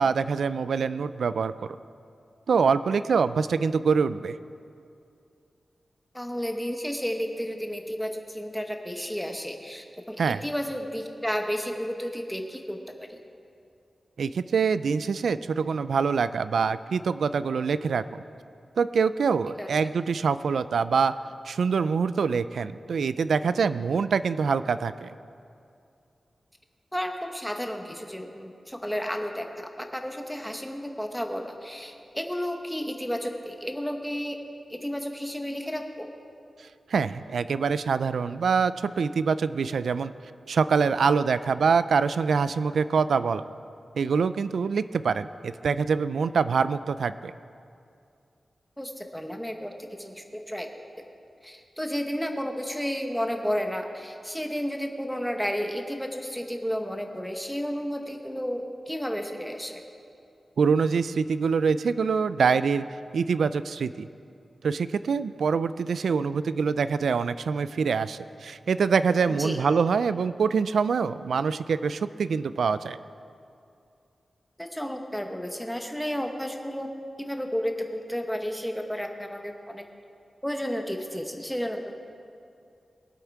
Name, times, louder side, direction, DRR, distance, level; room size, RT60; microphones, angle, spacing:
voice 1, 0.0-1.5 2.5-4.4 10.2-10.4 14.2-18.2 18.8-21.1 21.4-25.1 36.9-40.1 40.5-43.4 44.0-47.3 60.6-62.8 63.1-64.1 64.6-73.0, right 5 dB, 85° right, 14 dB, 0.3 m, -25 dB
voice 2, 6.1-12.8 13.1-13.2 19.6-19.7 26.9-34.4 34.7-36.1 48.8-50.8 51.4-59.8 69.4-69.6 74.6-76.9 77.2-79.8 80.4-81.9, equal, ahead, 4 dB, 0.9 m, -32 dB
21.5 x 8.1 x 4.7 m, 2.5 s
wide cardioid pair, 170°, 0 cm